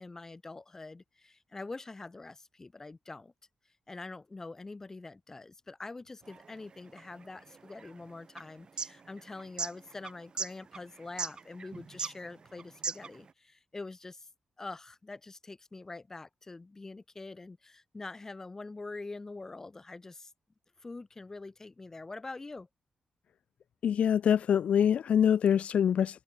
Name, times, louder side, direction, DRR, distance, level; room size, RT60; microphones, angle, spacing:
voice 1, 0.0-3.3 3.9-14.3 14.6-20.3 20.8-22.7, left 3 dB, 20° left, 1.9 m, -45 dB
sound 1, 6.2-13.3, right 5 dB, 40° right, 3.6 m, -39 dB
voice 2, 23.8-26.2, left 8 dB, 60° left, 0.3 m, -25 dB
open air
wide cardioid pair, 150°, 2 cm